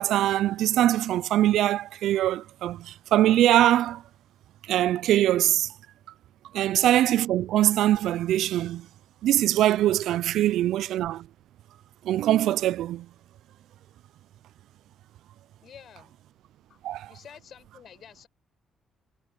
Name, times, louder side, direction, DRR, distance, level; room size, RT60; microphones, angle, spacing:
voice 1, 0.0-4.0 4.7-5.7 6.5-8.9 9.2-11.3 12.0-13.1 16.8-17.1, right 13 dB, 80° right, 0.3 m, -23 dB
voice 2, 15.6-16.1 16.7-16.8 17.1-18.3, left 8 dB, 60° left, 6.0 m, -49 dB
cardioid pair, 90°, 0 cm